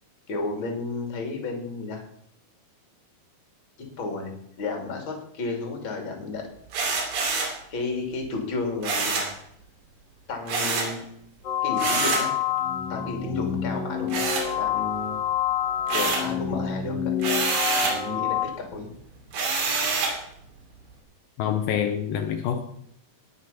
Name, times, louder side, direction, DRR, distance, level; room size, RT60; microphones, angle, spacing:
voice 1, 0.3-2.0 3.8-6.5 7.7-9.2 10.3-11.0 11.6-12.3 12.9-15.2 15.9-17.1 17.8-18.9, left 3 dB, 35° left, 2 dB, 2.9 m, -32 dB
sound 1, 6.7-7.6 8.8-9.4 10.5-11.0 11.8-12.3 14.1-15.0 15.3-16.3 17.2-18.0 19.3-20.2, right 4 dB, 65° right, 4.1 m, -26 dB
sound 2, 11.4-18.5, left 9 dB, 60° left, 1.6 m, -27 dB
voice 2, 21.4-22.6, left 9 dB, 80° left, 6 dB, 2.6 m, -26 dB
19.0 x 6.4 x 5.7 m, 0.68 s
omnidirectional pair, 4.5 m